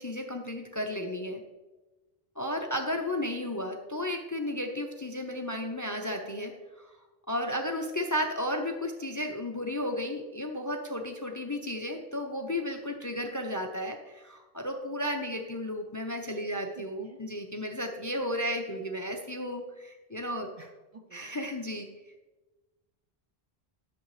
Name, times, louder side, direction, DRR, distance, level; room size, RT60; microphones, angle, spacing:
voice 1, 0.0-1.4 2.4-6.9 7.3-20.5 21.1-21.9, left 1 dB, 20° left, 4 dB, 0.5 m, -33 dB
voice 2, 16.8-17.2 20.6-21.3, right 4 dB, 45° right, 3 dB, 0.6 m, -51 dB
10.5 x 6.9 x 3.2 m, 1.1 s
omnidirectional pair, 1.0 m